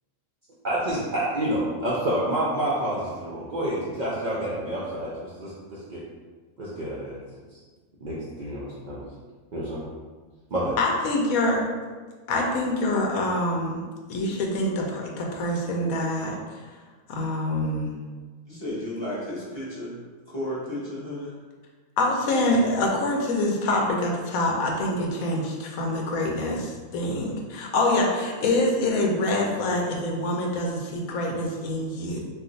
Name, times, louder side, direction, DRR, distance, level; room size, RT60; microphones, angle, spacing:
voice 1, 0.6-6.0 6.6-7.2 7.5-7.6 8.0-9.1 9.5-9.8 10.5-10.8, right 1 dB, 65° right, -6 dB, 0.4 m, -28 dB
voice 2, 10.8-11.7 12.3-13.8 14.1-16.4 17.1-18.0 22.0-32.2, left 1 dB, 85° left, 0 dB, 1.1 m, -25 dB
voice 3, 18.5-19.9 20.3-21.4, left 1 dB, 25° left, -9 dB, 0.6 m, -33 dB
2.5 x 2.4 x 3.8 m, 1.4 s
omnidirectional pair, 1.4 m